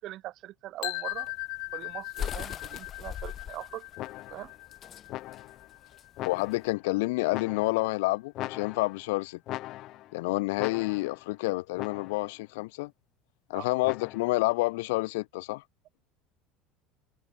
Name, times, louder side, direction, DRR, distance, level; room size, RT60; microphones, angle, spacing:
voice 1, 0.0-1.3 1.7-3.9 4.3-4.5 13.5-13.7, right 15 dB, 50° right, 5.0 m, -41 dB
sound 1, 0.8-6.7, left 33 dB, 70° left, 0.5 m, -40 dB
sound 2, 1.1-6.7, left 9 dB, 35° left, 1.1 m, -40 dB
sound 3, 4.0-4.6 5.1-5.7 6.2-6.8 7.3-8.0 8.3-9.1 9.5-10.2 10.6-11.3 11.8-12.4 13.8-14.4, left 16 dB, 55° left, 1.2 m, -40 dB
voice 2, 6.2-9.4 10.1-12.9 13.5-15.6, left 22 dB, 85° left, 1.5 m, -29 dB
supercardioid pair, 130°, 0 cm